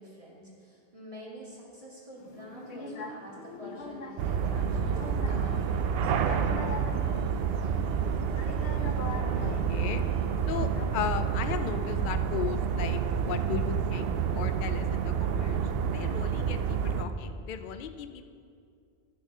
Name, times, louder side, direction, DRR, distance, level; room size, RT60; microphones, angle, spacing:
voice 1, 0.0-6.4, right 1 dB, 30° right, -6 dB, 2.2 m, -47 dB
sound 1, 2.2-10.9, left 3 dB, 80° left, 1.0 m, -43 dB
sound 2, 4.2-17.0, right 7 dB, 70° right, 0.8 m, -29 dB
voice 2, 9.3-10.0 10.5-18.3, left 8 dB, 60° left, 9 dB, 0.7 m, -36 dB
10.0 x 7.1 x 5.4 m, 2.3 s
omnidirectional pair, 1.1 m